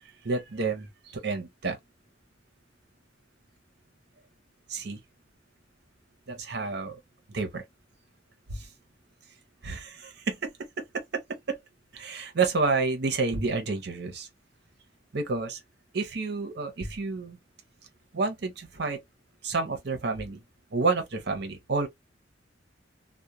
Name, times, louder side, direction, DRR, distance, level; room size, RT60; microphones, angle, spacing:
voice 1, 0.2-1.8 4.7-5.0 6.3-7.0 7.3-7.6 8.5-8.7 9.6-10.5 10.8-11.6 11.9-14.3 15.1-15.6 15.9-17.4 18.1-19.0 19.4-20.4 20.7-21.9, right 4 dB, 65° right, 0.8 m, -29 dB
2.3 x 2.1 x 2.9 m
head